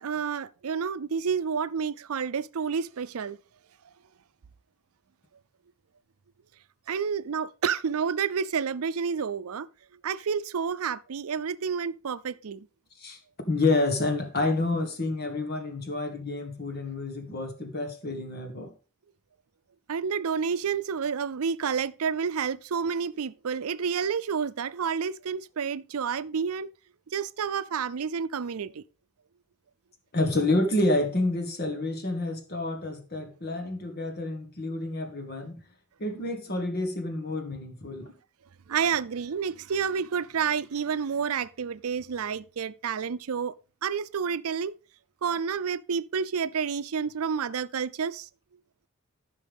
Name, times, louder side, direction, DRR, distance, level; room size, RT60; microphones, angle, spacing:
voice 1, 0.0-3.4 6.9-9.7 10.0-12.7 19.9-26.7 27.1-28.8 38.7-43.5 43.8-44.8 45.2-48.3, right 6 dB, 85° right, 0.5 m, -29 dB
voice 2, 13.5-18.7 30.1-35.6 36.0-38.1, left 2 dB, 45° left, 1.7 m, -29 dB
14.0 x 5.8 x 3.5 m
head